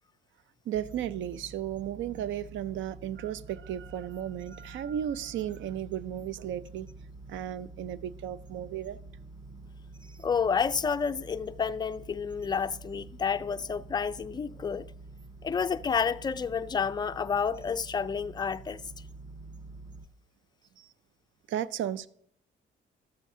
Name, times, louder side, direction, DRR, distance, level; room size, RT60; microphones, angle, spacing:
sound 1, 0.7-20.1, right 3 dB, 25° right, 0.6 m, -48 dB
voice 1, 0.7-6.9 7.3-9.0 20.8-20.9 21.5-22.1, right 10 dB, 75° right, 0.5 m, -34 dB
voice 2, 10.2-14.9 15.4-18.8, left 6 dB, 20° left, 0.3 m, -30 dB
13.0 x 7.4 x 2.7 m
cardioid pair, 90°, 20 cm